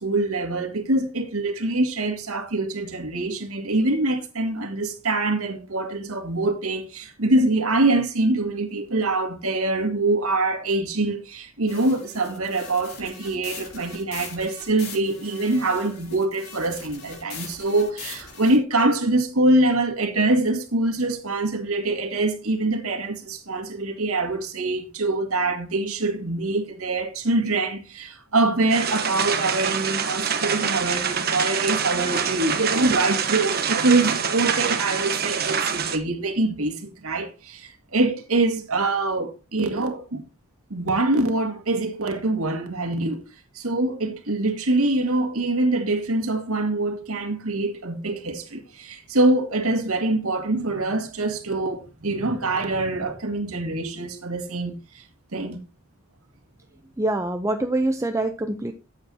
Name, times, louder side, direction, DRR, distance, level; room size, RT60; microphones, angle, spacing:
voice 1, 0.0-40.2 40.7-43.2 43.5-55.0 55.3-55.6, right 2 dB, 90° right, 1.9 m, -24 dB
sound 1, 11.7-18.6, left 5 dB, 45° left, 3.6 m, -41 dB
sound 2, 28.7-36.0, right 6 dB, 45° right, 1.2 m, -25 dB
voice 2, 57.0-58.7, right 2 dB, 15° right, 0.6 m, -25 dB
13.5 x 8.0 x 2.8 m
head